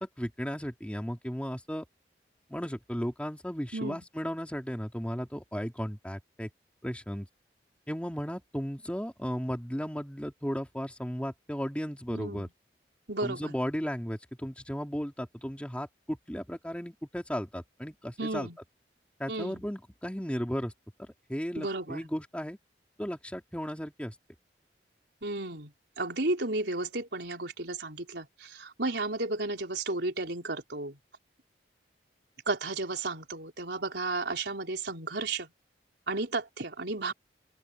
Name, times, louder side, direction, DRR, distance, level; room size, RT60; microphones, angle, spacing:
voice 1, 0.0-1.8 2.5-6.5 6.8-7.3 7.9-12.5 13.2-18.5 19.2-20.7 21.0-22.6 23.0-24.1, equal, 5° left, 3.0 m, -35 dB
voice 2, 12.1-12.5 13.1-13.5 18.2-18.6 19.3-19.6 21.6-22.1 25.2-31.0 32.5-35.5 36.1-37.1, right 2 dB, 80° right, 3.9 m, -33 dB
open air
head